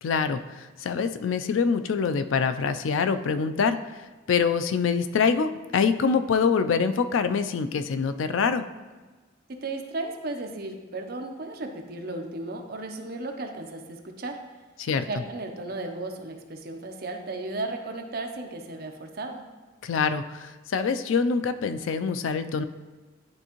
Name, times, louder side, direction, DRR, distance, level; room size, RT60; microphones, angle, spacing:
voice 1, 0.0-3.8 4.3-8.6 14.8-15.0 19.8-22.6, left 5 dB, 85° left, 10 dB, 0.4 m, -25 dB
voice 2, 9.5-14.4 15.0-19.5, right 2 dB, 50° right, 4 dB, 0.6 m, -35 dB
10.5 x 3.5 x 3.0 m, 1.3 s
head